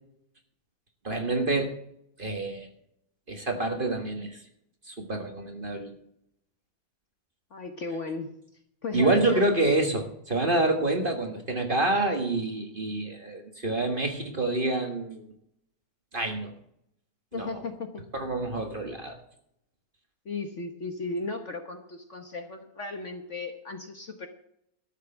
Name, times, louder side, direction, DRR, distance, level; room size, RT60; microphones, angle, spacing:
voice 1, 1.0-1.7 2.2-2.7 3.3-4.4 4.9-5.9 8.9-15.3 16.1-16.5 17.3-17.6 18.1-19.2, right 2 dB, 30° right, 3 dB, 1.6 m, -27 dB
voice 2, 7.5-8.3 8.8-9.5 17.3-18.0 20.2-24.3, left 3 dB, 45° left, 5 dB, 1.3 m, -35 dB
13.0 x 6.6 x 7.8 m, 0.74 s
omnidirectional pair, 2.0 m